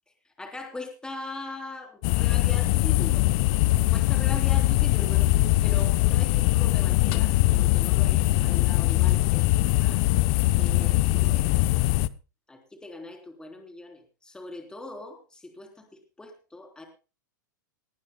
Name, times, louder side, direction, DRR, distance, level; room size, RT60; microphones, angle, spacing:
voice 1, 0.4-3.3 3.9-10.0 10.5-11.5 12.5-16.8, left 2 dB, 10° left, 3 dB, 3.6 m, -41 dB
sound 1, 2.0-12.1, left 17 dB, 50° left, 0.8 m, -22 dB
20.5 x 15.0 x 2.2 m, 0.32 s
hypercardioid pair, 115°, 10 cm